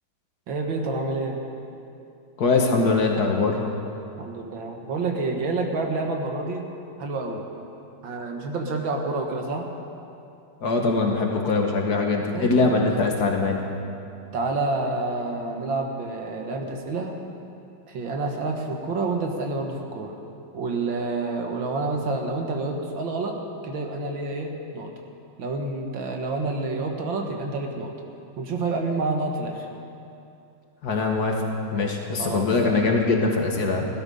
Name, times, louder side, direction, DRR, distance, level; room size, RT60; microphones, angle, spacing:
voice 1, 0.5-1.4 4.2-6.7 7.0-7.5 8.0-9.7 12.3-12.9 14.3-17.2 17.9-20.2 20.5-23.4 23.6-24.9 25.4-27.9 28.4-29.7 32.2-32.5, right 3 dB, 70° right, 2 dB, 2.0 m, -28 dB
voice 2, 2.4-3.6 10.6-13.6 30.8-31.4 31.7-33.9, left 3 dB, 55° left, 1 dB, 1.6 m, -22 dB
16.5 x 12.0 x 5.4 m, 2.7 s
omnidirectional pair, 2.2 m